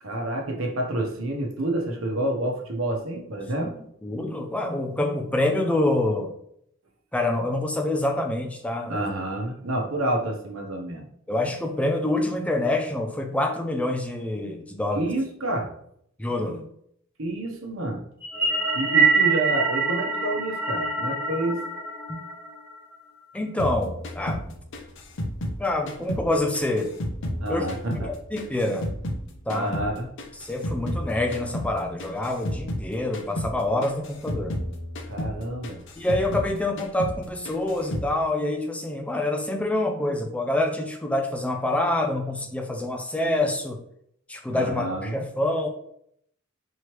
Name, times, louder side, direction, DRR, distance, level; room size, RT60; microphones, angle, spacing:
voice 1, 0.0-3.7 8.9-11.0 14.9-15.7 17.2-18.1 18.7-21.6 27.4-28.1 29.5-30.1 35.1-35.8 44.5-45.1, right 1 dB, 75° right, 1 dB, 0.9 m, -28 dB
voice 2, 4.0-6.3 7.1-9.0 11.3-15.1 16.2-16.7 22.1-22.2 23.3-24.6 25.6-26.9 27.5-27.6 28.3-28.9 29.5-29.7 30.4-34.6 36.0-43.8 44.3-45.7, left 1 dB, 5° left, 4 dB, 0.4 m, -26 dB
sound 1, 18.2-22.8, right 4 dB, 10° right, 1.1 m, -24 dB
sound 2, 23.6-26.3 26.5-29.2 29.5-32.9 33.1-33.5 33.8-36.5 36.8-37.2 37.4-38.1, left 1 dB, 65° left, 0.6 m, -32 dB
4.6 x 3.1 x 3.0 m, 0.71 s
head